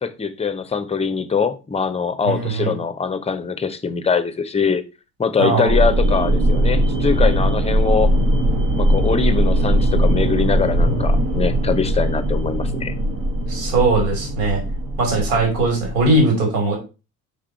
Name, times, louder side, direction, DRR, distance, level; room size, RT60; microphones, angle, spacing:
voice 1, 0.0-4.8 5.2-8.1 8.8-12.9, left 5 dB, 15° left, 0.8 m, -22 dB
voice 2, 2.2-2.8 5.4-5.7 13.5-14.6 15.0-16.8, right 2 dB, 60° right, 3.1 m, -19 dB
sound 1, 5.7-16.2, right 1 dB, 45° right, 1.5 m, -19 dB
5.5 x 5.0 x 4.3 m
figure-of-eight pair, 55°, 45 cm